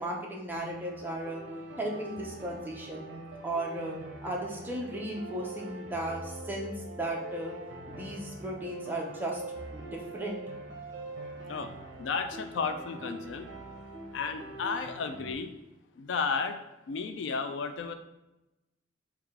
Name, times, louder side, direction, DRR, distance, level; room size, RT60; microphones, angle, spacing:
voice 1, 0.0-1.4 1.8-3.0 3.4-7.5 7.9-9.4 9.7-10.4, right 1 dB, 10° right, -2 dB, 0.6 m, -35 dB
sound 1, 0.5-15.3, right 2 dB, 65° right, 0.7 m, -43 dB
voice 2, 12.0-13.5 14.1-15.5 16.0-16.6 16.9-17.9, left 5 dB, 70° left, 8 dB, 0.3 m, -33 dB
4.7 x 2.3 x 3.5 m, 0.97 s
head